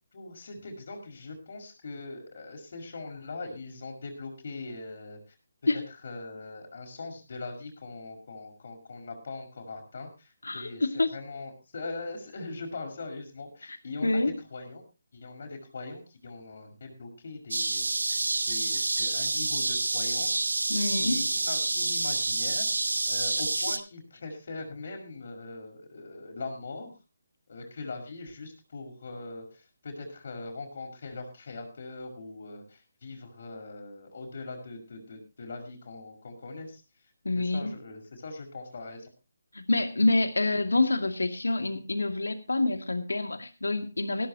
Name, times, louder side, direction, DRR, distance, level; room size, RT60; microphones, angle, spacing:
voice 1, 0.1-5.2 5.7-14.2 14.5-14.8 15.1-17.9 18.5-20.5 21.0-22.7 23.1-26.9 27.5-36.8 37.4-39.1, left 3 dB, 60° left, 2 dB, 5.7 m, -41 dB
voice 2, 10.4-11.1 13.7-13.8 14.0-14.3 20.7-21.2 37.2-37.7 39.5-44.3, left 2 dB, 85° left, 7 dB, 2.3 m, -27 dB
sound 1, 17.5-23.8, right 2 dB, 85° right, 1.7 m, -28 dB
16.5 x 15.0 x 2.9 m, 0.30 s
figure-of-eight pair, 150°, 0 cm